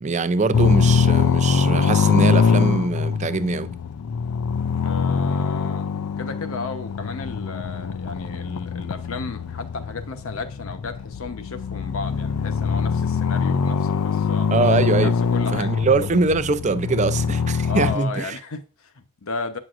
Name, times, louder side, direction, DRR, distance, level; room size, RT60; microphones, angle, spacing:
voice 1, 0.0-3.7 14.5-15.1 15.5-18.4, right 4 dB, 30° right, 0.4 m, -22 dB
sound 1, 0.5-18.0, left 5 dB, 90° left, 0.4 m, -23 dB
voice 2, 4.8-5.9 6.2-14.5 15.0-15.7 17.6-19.6, left 3 dB, 70° left, 0.9 m, -34 dB
8.8 x 6.2 x 2.5 m
head